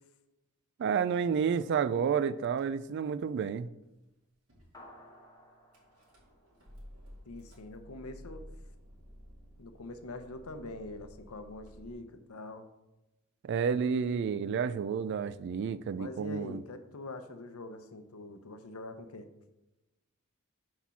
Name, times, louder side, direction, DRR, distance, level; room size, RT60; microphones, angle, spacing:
voice 1, 0.8-3.7 13.4-16.6, right 6 dB, 50° right, 0.3 m, -30 dB
Car / Engine starting / Idling, 1.3-2.1 2.4-3.2 3.8-3.9 4.1-4.2 4.5-4.8 5.7-11.9, equal, 80° right, 2.1 m, -53 dB
sound 1, 4.7-7.4, left 1 dB, 15° left, 1.3 m, -57 dB
voice 2, 7.3-8.4 9.6-12.7 15.9-19.3, left 2 dB, 80° left, 0.7 m, -44 dB
6.1 x 4.3 x 5.6 m
head